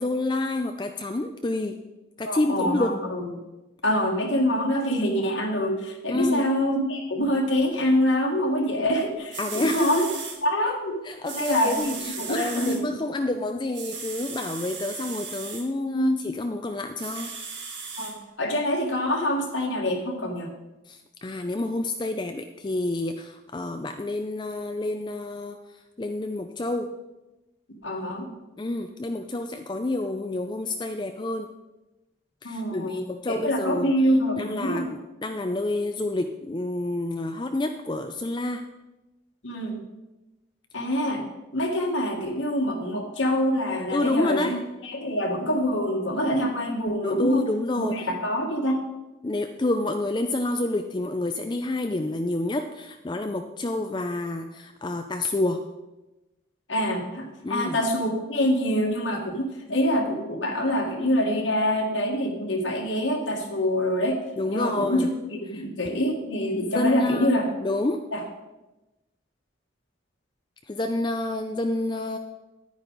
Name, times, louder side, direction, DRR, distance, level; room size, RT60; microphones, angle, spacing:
voice 1, 0.0-1.8 2.2-2.9 6.1-6.5 9.4-10.0 11.0-17.3 20.9-25.6 26.0-26.9 28.6-31.5 32.4-33.9 34.4-38.6 43.9-44.6 47.0-47.9 49.2-55.6 57.4-57.8 64.4-65.1 65.6-65.7 66.5-68.0 70.7-72.2, left 2 dB, 25° left, 6 dB, 0.4 m, -28 dB
voice 2, 2.3-3.3 3.8-10.1 10.4-11.0 11.3-13.0 15.9-16.2 18.0-20.5 27.8-28.3 32.4-33.0 33.3-34.9 39.4-39.8 40.7-41.2 41.5-47.4 47.8-48.8 56.7-64.2 64.5-67.5 68.1-68.2, equal, 80° left, 0 dB, 1.6 m, -25 dB
sound 1, 9.0-9.1 9.3-10.4 11.2-12.8 13.7-15.6 17.0-18.1 18.8-18.9, right 5 dB, 65° right, 2.0 m, -36 dB
9.9 x 9.8 x 4.0 m, 1.0 s
head